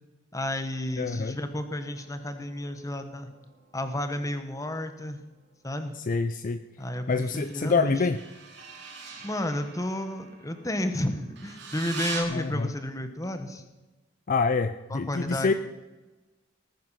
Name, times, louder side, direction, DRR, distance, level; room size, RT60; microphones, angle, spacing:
voice 1, 0.3-3.3 3.7-5.2 5.6-6.0 6.8-8.0 9.2-13.6 14.9-15.5, left 1 dB, 20° left, 8 dB, 1.3 m, -32 dB
voice 2, 1.0-1.4 6.1-6.6 7.1-8.2 12.3-12.7 14.3-15.5, left 4 dB, 45° left, 10 dB, 0.5 m, -26 dB
sound 1, 1.9-5.0 7.3-12.2, right 5 dB, 65° right, 3.0 m, -43 dB
18.5 x 9.6 x 5.7 m, 1.1 s
head